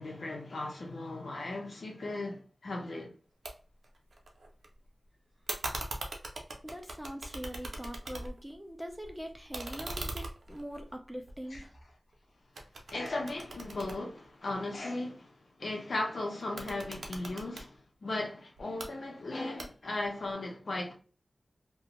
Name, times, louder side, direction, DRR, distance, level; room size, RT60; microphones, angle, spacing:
voice 1, 0.0-3.1 11.5-11.6 12.9-20.9, left 2 dB, 70° left, 0.8 m, -37 dB
sound 1, 3.4-3.5 3.8-4.7 5.5-8.5 8.9-12.1 12.6-14.8 16.4-17.7 18.6-18.9 19.6-20.0, right 2 dB, 75° right, 0.6 m, -41 dB
voice 2, 6.6-11.7, equal, 5° right, 0.5 m, -42 dB
2.5 x 2.2 x 2.9 m
wide cardioid pair, 75°, 0 cm